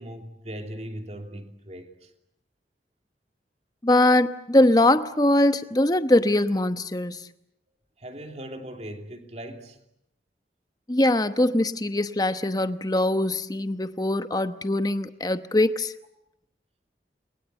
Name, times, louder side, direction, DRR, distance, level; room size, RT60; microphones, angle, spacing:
voice 1, 0.0-2.1 8.0-9.8, right 1 dB, 40° right, 2.9 m, -39 dB
voice 2, 3.8-7.3 10.9-15.9, left 1 dB, 20° left, 1.0 m, -22 dB
30.0 x 22.0 x 8.1 m
head